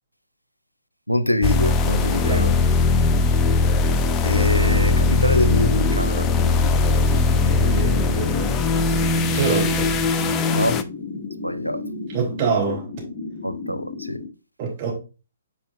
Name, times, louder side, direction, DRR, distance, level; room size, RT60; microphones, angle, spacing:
voice 1, 1.1-2.5 4.2-6.3 10.5-10.8 11.4-11.8 13.4-14.2, left 1 dB, 90° left, 0.6 m, -24 dB
Swooshy-Drone, 1.4-10.8, left 3 dB, 20° left, 0.5 m, -20 dB
voice 2, 2.2-2.6 6.9-7.0 7.3-8.7 9.3-9.9 12.1-12.9 14.6-14.9, right 5 dB, 35° right, 2.9 m, -26 dB
sound 1, 5.0-14.3, left 3 dB, 40° left, 1.5 m, -34 dB
8.6 x 4.7 x 2.5 m
figure-of-eight pair, 125°, 0 cm